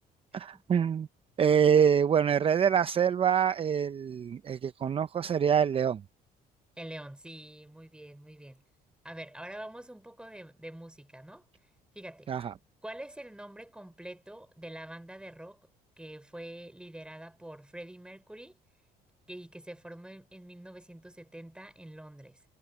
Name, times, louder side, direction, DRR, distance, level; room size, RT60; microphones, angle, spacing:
voice 1, 0.3-1.1 1.4-6.0 12.3-12.5, right 8 dB, 35° right, 0.6 m, -25 dB
voice 2, 6.8-8.6 9.0-11.5 11.9-12.3 12.8-15.6 16.0-18.6 19.3-22.4, right 1 dB, 5° right, 3.9 m, -45 dB
cardioid pair, 110°, 17 cm